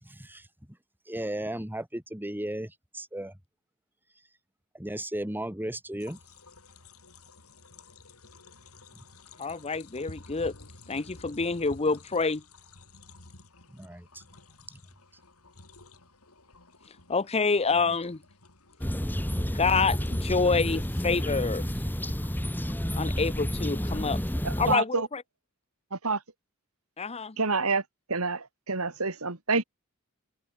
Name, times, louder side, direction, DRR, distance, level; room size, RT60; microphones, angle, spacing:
voice 1, 0.0-0.5 1.1-3.3 4.7-6.2 13.7-14.2 14.7-14.8, right 1 dB, 10° right, 3.3 m, -35 dB
sound 1, 6.0-23.1, left 2 dB, 80° left, 6.8 m, -52 dB
voice 2, 9.4-10.5 10.9-12.4 17.1-18.2 19.5-21.7 22.9-24.2 24.6-25.2 27.0-27.4, left 4 dB, 30° left, 0.8 m, -27 dB
sound 2, 18.8-24.8, equal, 10° left, 2.0 m, -30 dB
voice 3, 24.4-25.1 25.9-26.2 27.4-27.8 28.1-29.6, right 4 dB, 75° right, 2.9 m, -28 dB
open air
head